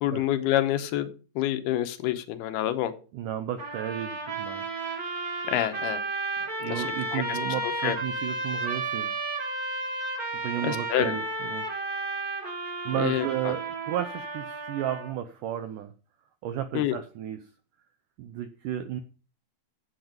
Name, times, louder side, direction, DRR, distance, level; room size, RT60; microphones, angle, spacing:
voice 1, 0.0-1.1 1.4-2.9 5.5-6.0 7.1-7.4 7.8-8.0 10.6-11.2 13.0-13.5 16.7-17.0, left 12 dB, 85° left, 9 dB, 2.8 m, -27 dB
voice 2, 3.1-4.6 6.4-9.1 10.4-11.7 12.9-15.9 16.4-17.5 18.2-19.0, right 10 dB, 80° right, 9 dB, 1.8 m, -33 dB
sound 1, 3.6-15.1, right 2 dB, 30° right, 2.2 m, -33 dB
9.1 x 8.1 x 5.1 m, 0.36 s
omnidirectional pair, 4.6 m